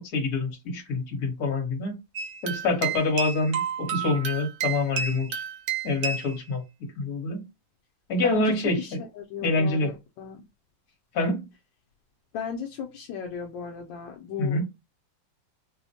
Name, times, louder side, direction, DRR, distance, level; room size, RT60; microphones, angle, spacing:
voice 1, 0.0-2.0 2.4-5.4 5.8-6.6 7.0-7.4 8.1-9.0 9.4-9.9 11.1-11.5 14.4-14.6, left 2 dB, 55° left, 2 dB, 1.5 m, -26 dB
sound 1, 2.2-6.4, right 7 dB, 75° right, 1.3 m, -31 dB
voice 2, 8.2-9.9 10.2-10.4 12.3-14.6, left 7 dB, 80° left, 1 dB, 1.2 m, -35 dB
4.7 x 2.1 x 2.7 m, 0.24 s
omnidirectional pair, 2.1 m